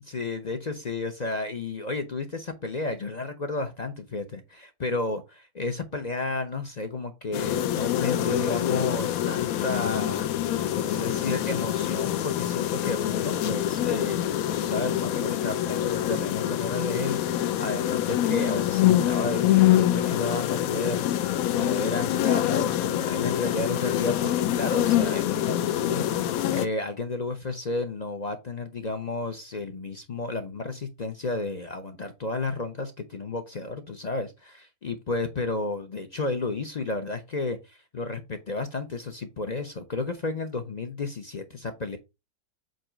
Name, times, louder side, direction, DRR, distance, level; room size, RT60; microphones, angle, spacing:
voice 1, 0.1-42.0, left 3 dB, 50° left, 6 dB, 0.5 m, -32 dB
sound 1, 7.3-26.7, left 12 dB, 70° left, 0.9 m, -25 dB
7.9 x 3.0 x 4.9 m, 0.24 s
omnidirectional pair, 1.9 m